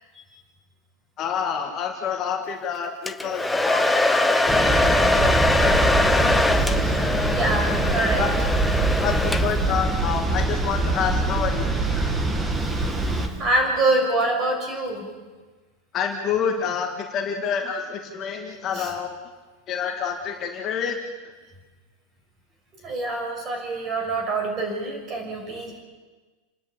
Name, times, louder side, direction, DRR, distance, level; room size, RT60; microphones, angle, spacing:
voice 1, 1.2-6.3 8.2-8.3 9.0-9.1 9.4-11.7 15.9-19.1 19.7-21.0, left 7 dB, 30° left, 2 dB, 2.0 m, -28 dB
Domestic sounds home sounds, 3.1-9.8, left 2 dB, 5° left, 0.8 m, -22 dB
sound 1, 4.5-13.3, right 2 dB, 10° right, 1.7 m, -24 dB
voice 2, 6.5-7.0 7.3-8.3 9.1-9.8 12.6-15.1 18.7-18.9 22.8-25.7, right 2 dB, 25° right, 3 dB, 6.3 m, -26 dB
30.0 x 10.5 x 8.7 m, 1.3 s
supercardioid pair, 155°, 0 cm